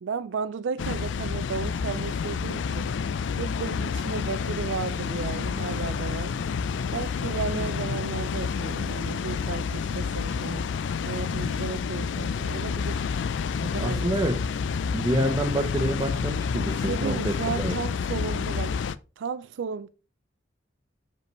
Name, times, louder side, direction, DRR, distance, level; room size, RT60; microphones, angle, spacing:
voice 1, 0.0-2.9 3.4-6.3 6.9-10.7 11.0-13.1 13.6-14.4 16.8-18.7 19.2-19.9, right 5 dB, 90° right, 0.4 m, -34 dB
Water, 0.8-19.0, left 6 dB, 80° left, 0.4 m, -29 dB
voice 2, 13.8-14.4 14.9-17.8, right 1 dB, 20° right, 0.7 m, -27 dB
6.6 x 5.2 x 3.1 m
head